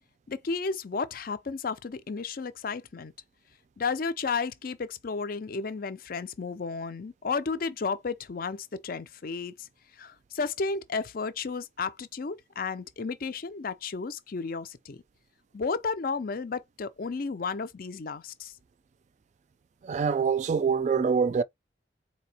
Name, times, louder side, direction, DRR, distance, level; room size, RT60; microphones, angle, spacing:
voice 1, 0.3-3.1 3.8-9.7 10.0-15.0 15.5-18.5, left 4 dB, 55° left, 0.5 m, -33 dB
voice 2, 19.8-21.4, right 6 dB, 40° right, 0.3 m, -25 dB
4.2 x 2.8 x 2.8 m
head